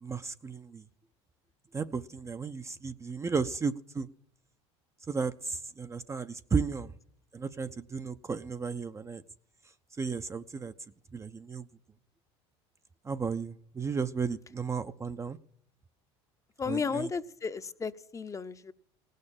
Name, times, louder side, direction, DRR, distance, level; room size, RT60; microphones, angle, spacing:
voice 1, 0.0-0.8 1.7-4.1 5.1-6.9 7.3-9.2 10.0-10.7 11.1-11.7 13.0-15.4 16.7-17.1, right 5 dB, 20° right, 10 dB, 0.5 m, -34 dB
voice 2, 16.6-18.7, left 5 dB, 20° left, 12 dB, 0.6 m, -34 dB
17.5 x 6.5 x 8.7 m, 0.67 s
supercardioid pair, 90°, 15 cm